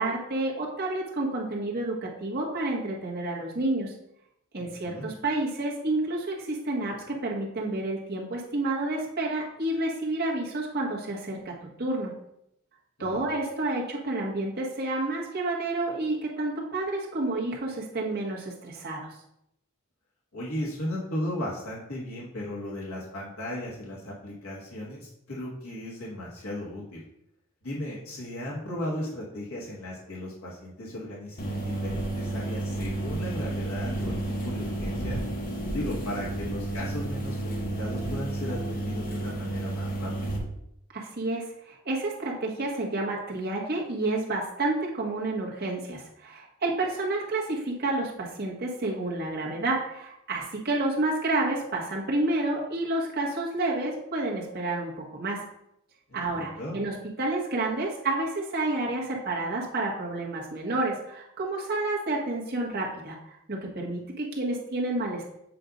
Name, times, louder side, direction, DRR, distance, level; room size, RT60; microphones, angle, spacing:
voice 1, 0.0-3.9 4.5-11.5 11.8-12.1 13.0-19.1 40.9-55.4 56.1-63.2 63.5-65.2, right 2 dB, 50° right, -3 dB, 1.4 m, -30 dB
voice 2, 4.6-5.1 13.0-13.2 20.3-27.0 27.6-35.2 35.7-40.1 56.1-56.8, left 1 dB, 85° left, -5 dB, 1.5 m, -36 dB
sound 1, 31.4-40.4, right 2 dB, 40° left, 1.1 m, -31 dB
7.5 x 2.6 x 5.1 m, 0.79 s
head